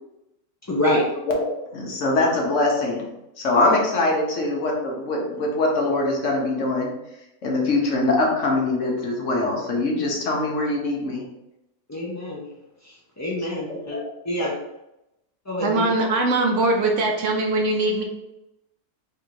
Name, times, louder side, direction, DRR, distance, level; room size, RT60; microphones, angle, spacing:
voice 1, 0.6-1.0 3.5-3.7 7.6-7.7 11.9-12.4 12.8-14.0 14.2-14.5 15.5-15.9, left 1 dB, 25° left, -6 dB, 0.3 m, -26 dB
voice 2, 1.7-3.1 3.4-6.9 7.4-11.2 13.7-14.0, left 2 dB, 60° left, -1 dB, 1.2 m, -23 dB
voice 3, 15.6-18.0, right 2 dB, 65° right, 2 dB, 0.8 m, -21 dB
3.5 x 2.6 x 4.5 m, 0.89 s
omnidirectional pair, 1.5 m